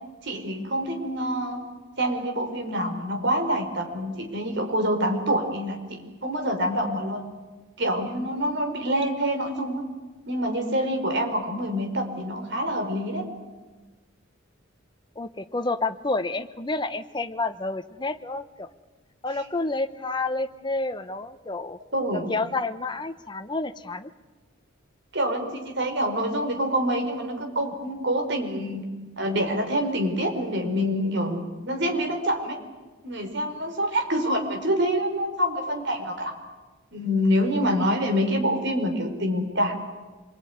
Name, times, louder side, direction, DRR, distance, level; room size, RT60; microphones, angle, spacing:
voice 1, 0.2-1.6 2.0-7.3 7.8-9.8 10.3-13.3 21.9-22.2 25.1-28.8 29.2-32.6 33.0-36.3 36.9-39.8, equal, 55° right, 4 dB, 4.6 m, -26 dB
voice 2, 15.2-18.7 19.2-21.8 22.1-24.1, left 3 dB, 20° left, 9 dB, 1.0 m, -29 dB
26.5 x 21.5 x 9.6 m, 1.2 s
head